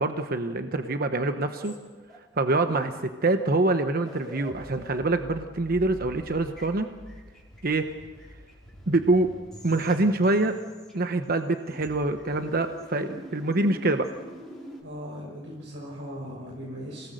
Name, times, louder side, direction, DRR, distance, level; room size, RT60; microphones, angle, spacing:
voice 1, 0.0-1.7 2.4-6.9 7.6-7.9 8.9-9.3 9.6-10.6 10.9-14.1, right 2 dB, 50° right, 7 dB, 1.0 m, -25 dB
sound 1, 1.6-2.5 3.6-3.7 3.9-11.3 11.7-14.8, equal, 5° left, 4.8 m, -45 dB
voice 2, 14.8-17.1, equal, 75° right, -3 dB, 5.7 m, -39 dB
28.5 x 18.5 x 6.5 m, 1.4 s
head